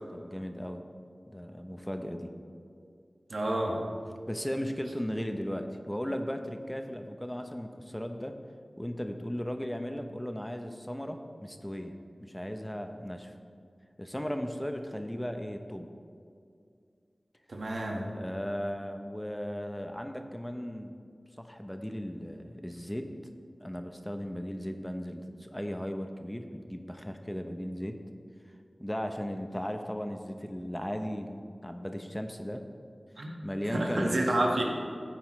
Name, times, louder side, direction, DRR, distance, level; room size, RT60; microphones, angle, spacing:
voice 1, 0.1-0.8 1.3-2.3 4.3-8.3 8.8-11.9 12.2-13.3 14.0-15.9 17.9-20.9 21.4-23.1 23.6-28.0 28.8-32.6 33.4-34.2, equal, 10° left, 5 dB, 0.8 m, -36 dB
voice 2, 3.3-3.8 17.5-18.1 33.2-33.3 33.7-34.6, right 1 dB, 80° right, 0 dB, 1.5 m, -29 dB
15.0 x 8.9 x 3.2 m, 2.3 s
wide cardioid pair, 60°, 0 cm